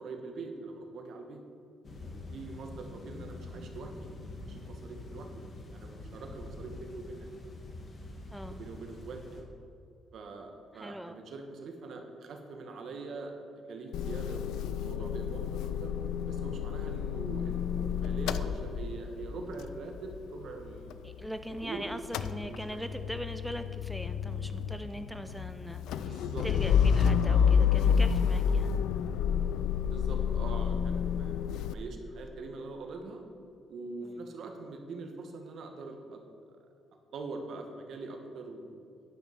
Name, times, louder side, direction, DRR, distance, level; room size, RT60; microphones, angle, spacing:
voice 1, 0.0-1.4 2.3-5.3 5.7-7.3 8.5-9.5 10.1-13.3 13.7-14.4 14.7-16.0 16.3-21.0 21.5-21.9 22.4-22.8 26.0-26.5 27.2-27.6 29.8-33.2 33.7-36.2 37.1-38.8, right 3 dB, 65° right, 4 dB, 1.4 m, -43 dB
sound 1, 1.8-9.4, left 2 dB, 45° left, 1.7 m, -45 dB
voice 2, 10.7-11.2 21.0-28.7 34.0-34.2, equal, ahead, 8 dB, 0.4 m, -41 dB
Motor vehicle (road) / Engine starting / Idling, 13.9-21.6 21.9-31.7, left 7 dB, 85° left, 0.3 m, -29 dB
10.5 x 6.0 x 5.9 m, 2.5 s
cardioid pair, 90°, 0 cm